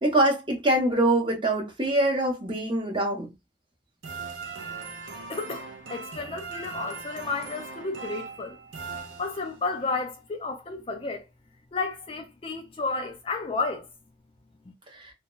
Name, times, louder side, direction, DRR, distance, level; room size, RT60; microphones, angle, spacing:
voice 1, 0.0-3.3, right 1 dB, 25° right, 0.7 m, -24 dB
sound 1, 4.0-9.8, right 4 dB, 90° right, 0.6 m, -39 dB
voice 2, 5.3-8.6 9.2-11.3 11.7-13.9, left 3 dB, 30° left, 0.3 m, -32 dB
2.2 x 2.1 x 3.0 m
head